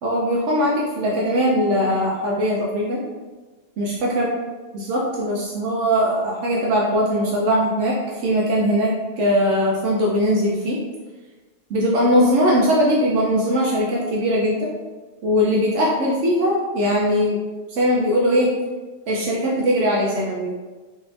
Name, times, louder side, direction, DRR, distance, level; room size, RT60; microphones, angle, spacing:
voice 1, 0.0-3.0 3.8-4.3 4.7-8.0 8.2-10.8 11.7-14.7 15.2-17.4 17.7-18.5 19.1-20.5, equal, 75° right, -4 dB, 0.9 m, -20 dB
3.9 x 3.2 x 2.4 m, 1.3 s
omnidirectional pair, 1.3 m